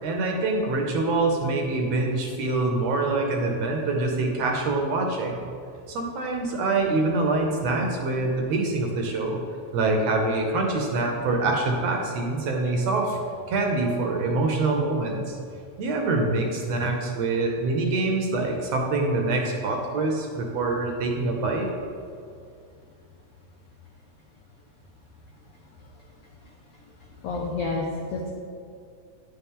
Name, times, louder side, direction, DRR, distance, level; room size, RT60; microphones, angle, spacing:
voice 1, 0.0-5.4 5.9-9.4 9.7-13.2 13.5-15.4 15.8-21.7, right 2 dB, 70° right, 1 dB, 1.7 m, -25 dB
voice 2, 27.2-28.3, left 3 dB, 80° left, -2 dB, 1.3 m, -29 dB
9.7 x 5.7 x 3.6 m, 2.4 s
omnidirectional pair, 3.4 m